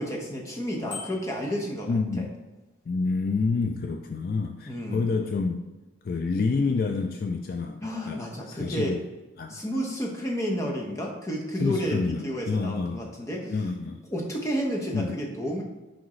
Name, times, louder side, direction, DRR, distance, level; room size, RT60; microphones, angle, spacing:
voice 1, 0.0-2.2 4.7-5.1 7.8-9.0 9.5-13.6 14.1-15.6, equal, 15° left, -1 dB, 0.9 m, -31 dB
Bicycle bell, 0.9-1.5, left 6 dB, 80° left, 1.7 m, -40 dB
voice 2, 1.9-2.3 2.9-5.7 6.0-8.2 8.5-9.0 9.4-9.6 11.6-13.1 13.5-14.0 14.9-15.2, left 4 dB, 50° left, 5 dB, 0.3 m, -28 dB
6.0 x 5.1 x 3.1 m, 1.2 s
head